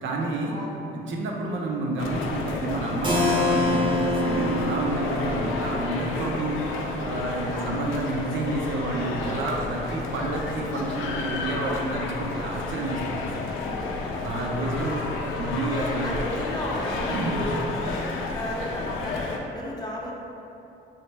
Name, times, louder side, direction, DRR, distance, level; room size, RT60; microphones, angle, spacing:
voice 1, 0.0-0.6 0.9-6.6 7.0-13.5 14.2-16.2 16.9-17.5, right 2 dB, 70° right, -1 dB, 0.6 m, -30 dB
sound 1, 2.0-19.4, left 3 dB, 90° left, 0.4 m, -31 dB
Keyboard (musical), 3.0-8.6, left 1 dB, 25° right, 0.6 m, -28 dB
voice 2, 14.0-15.0 15.6-17.0 17.4-20.1, left 1 dB, 20° left, -4 dB, 0.6 m, -35 dB
5.5 x 2.1 x 3.2 m, 2.9 s
cardioid pair, 90°, 20 cm